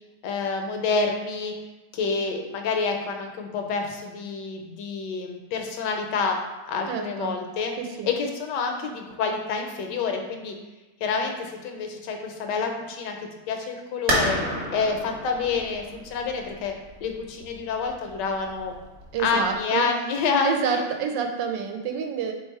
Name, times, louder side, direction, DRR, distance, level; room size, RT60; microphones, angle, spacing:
voice 1, 0.2-1.5 1.9-6.4 6.7-7.7 8.0-10.5 11.0-14.4 14.7-16.7 17.0-18.7 19.2-20.9, left 5 dB, 75° left, 3 dB, 1.2 m, -28 dB
voice 2, 6.9-7.4 7.8-8.1 19.1-19.9 20.4-22.3, right 6 dB, 85° right, 4 dB, 1.2 m, -28 dB
sound 1, 14.1-19.6, right 1 dB, 50° right, 1.1 m, -31 dB
3.2 x 3.0 x 4.6 m, 1.2 s
omnidirectional pair, 1.9 m